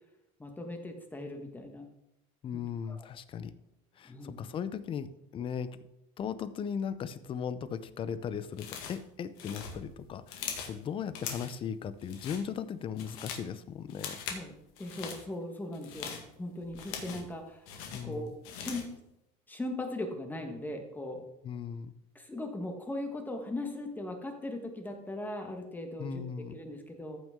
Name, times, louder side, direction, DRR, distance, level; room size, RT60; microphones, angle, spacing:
voice 1, 0.4-1.9 2.5-2.6 2.9-3.1 4.0-4.4 14.3-14.5 14.8-17.7 18.0-18.9 19.5-21.2 22.1-27.2, left 1 dB, 10° left, 4 dB, 1.5 m, -39 dB
voice 2, 2.4-3.5 4.0-5.8 6.2-14.2 17.9-18.3 21.4-21.9 26.0-26.6, left 7 dB, 30° left, 14 dB, 0.6 m, -37 dB
sound 1, 8.6-9.1 9.4-10.8 11.1-11.6 12.0-12.4 12.8-13.5 13.9-14.4 14.8-15.2 15.7-17.3 17.7-18.9, left 7 dB, 85° left, 1.9 m, -41 dB
14.0 x 6.1 x 3.7 m, 0.83 s
cardioid pair, 140°, 18 cm